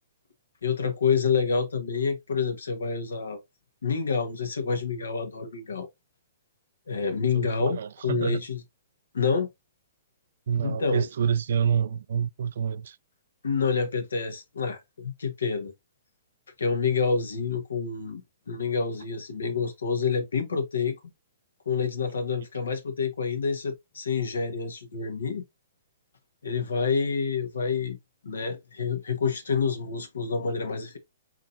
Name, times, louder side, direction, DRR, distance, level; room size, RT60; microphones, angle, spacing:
voice 1, 0.6-3.4 3.8-5.9 6.9-8.6 9.1-9.5 10.6-11.1 13.4-15.7 16.6-18.2 18.5-21.0 21.6-25.4 26.4-28.0 28.2-31.0, left 5 dB, 85° left, 1.3 m, -28 dB
voice 2, 7.3-8.4 10.5-13.0, right 7 dB, 65° right, 0.3 m, -27 dB
4.3 x 3.7 x 2.5 m
hypercardioid pair, 130°, 0 cm